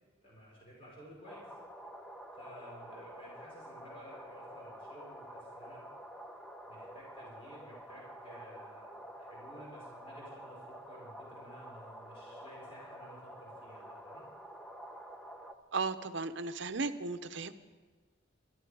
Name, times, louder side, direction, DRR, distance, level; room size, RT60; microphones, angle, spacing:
voice 1, 0.2-1.6 2.3-5.8 6.7-14.2, equal, 30° left, -4 dB, 4.7 m, -54 dB
sound 1, 1.3-15.5, equal, 5° left, 0.8 m, -49 dB
voice 2, 15.7-17.5, right 4 dB, 65° right, 11 dB, 0.8 m, -35 dB
23.0 x 13.0 x 4.9 m, 1.4 s
head